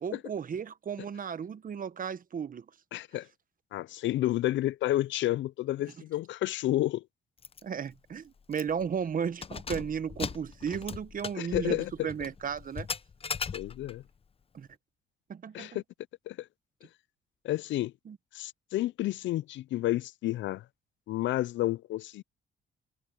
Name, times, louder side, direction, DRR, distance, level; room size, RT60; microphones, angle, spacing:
voice 1, 0.0-2.6 7.6-12.9 14.5-14.7 15.3-15.8 18.1-18.2, right 7 dB, 45° right, 1.1 m, -34 dB
voice 2, 2.9-3.3 3.7-7.0 11.4-12.1 13.5-14.0 15.5-15.8 16.3-16.5 17.4-17.9 18.3-20.6 21.1-22.2, left 15 dB, 70° left, 0.4 m, -30 dB
Keys jangling, 7.4-7.6 7.9-8.0 8.5-8.9 9.3-14.0, left 5 dB, 30° left, 0.7 m, -39 dB
cardioid pair, 90°, 20 cm